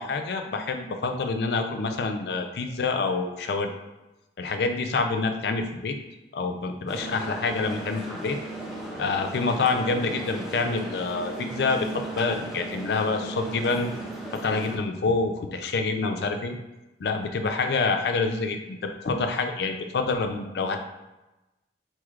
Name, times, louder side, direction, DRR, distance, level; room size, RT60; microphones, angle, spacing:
voice 1, 0.0-3.7 4.4-6.0 6.3-8.4 9.0-11.9 12.2-13.9 14.4-16.6 17.0-20.8, left 4 dB, 60° left, 5 dB, 0.4 m, -27 dB
sound 1, 6.9-14.8, right 1 dB, ahead, 0.5 m, -36 dB
4.1 x 3.1 x 2.4 m, 1.0 s
head